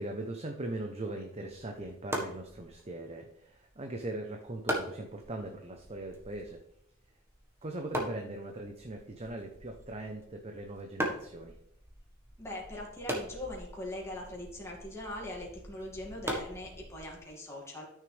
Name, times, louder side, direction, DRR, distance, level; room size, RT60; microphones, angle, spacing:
voice 1, 0.0-6.6 7.6-11.6, right 2 dB, 30° right, 3 dB, 0.8 m, -40 dB
sound 1, 1.4-17.3, right 1 dB, 10° right, 1.5 m, -41 dB
voice 2, 12.4-17.8, left 1 dB, 15° left, -3 dB, 2.3 m, -41 dB
12.5 x 6.6 x 3.4 m, 0.72 s
head